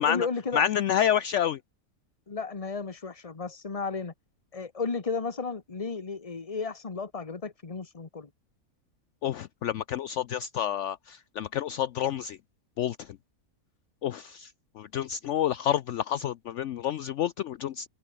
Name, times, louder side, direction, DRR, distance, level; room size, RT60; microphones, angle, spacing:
voice 1, 0.0-0.6 2.3-4.1 4.5-8.3, left 4 dB, 25° left, 1.4 m, -33 dB
voice 2, 0.5-1.6 9.2-12.4 12.8-13.1 14.0-14.5 14.8-17.9, left 10 dB, 65° left, 0.9 m, -28 dB
omnidirectional pair, 1.4 m